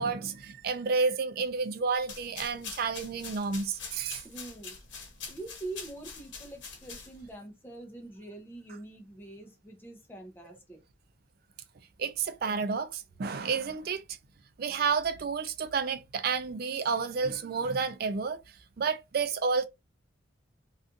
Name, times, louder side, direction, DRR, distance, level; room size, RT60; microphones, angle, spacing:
voice 1, 0.0-4.2 12.0-14.0 14.6-18.4 18.8-19.6, right 5 dB, 50° right, 0.3 m, -30 dB
sound 1, 2.0-7.3, left 5 dB, 65° left, 0.9 m, -44 dB
voice 2, 4.2-4.8 5.3-10.8, right 2 dB, 10° left, 0.6 m, -44 dB
2.5 x 2.4 x 2.5 m
head